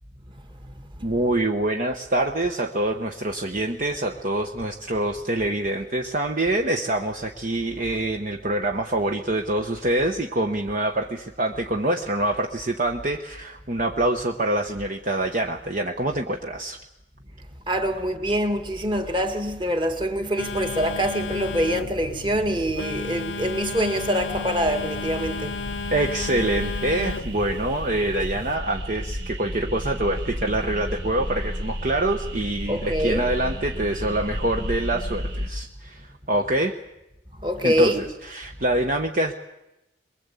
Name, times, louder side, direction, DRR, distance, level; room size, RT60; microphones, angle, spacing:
voice 1, 1.0-16.8 25.9-36.7 37.6-39.3, right 1 dB, 40° right, 1.1 m, -25 dB
voice 2, 17.7-25.6 32.7-33.3 37.4-38.0, equal, 25° right, 1.9 m, -25 dB
Telephone, 20.4-28.6, left 4 dB, 70° left, 0.9 m, -33 dB
sound 1, 23.6-35.5, equal, 90° right, 4.2 m, -33 dB
23.0 x 22.0 x 8.3 m
head